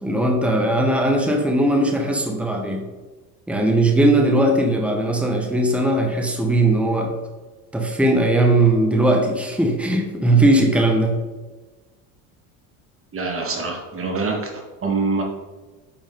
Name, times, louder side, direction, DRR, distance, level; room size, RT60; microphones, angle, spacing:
voice 1, 0.0-2.8 3.5-7.1 7.7-11.2, right 1 dB, 5° right, 2 dB, 1.3 m, -19 dB
voice 2, 13.1-14.5 14.8-15.2, right 4 dB, 30° right, 1 dB, 2.0 m, -24 dB
8.8 x 5.2 x 3.8 m, 1.2 s
supercardioid pair, 95°, 42 cm